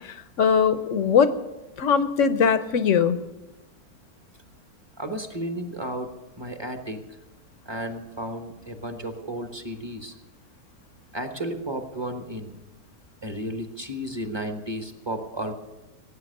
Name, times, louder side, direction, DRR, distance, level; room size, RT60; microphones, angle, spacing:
voice 1, 0.4-1.3 1.8-3.2, left 7 dB, 60° left, 11 dB, 1.0 m, -20 dB
voice 2, 5.0-6.1 6.4-7.0 7.6-10.1 11.1-12.6 13.2-15.5, right 1 dB, 20° right, 6 dB, 1.1 m, -33 dB
17.5 x 9.2 x 6.6 m, 1.0 s
omnidirectional pair, 1.6 m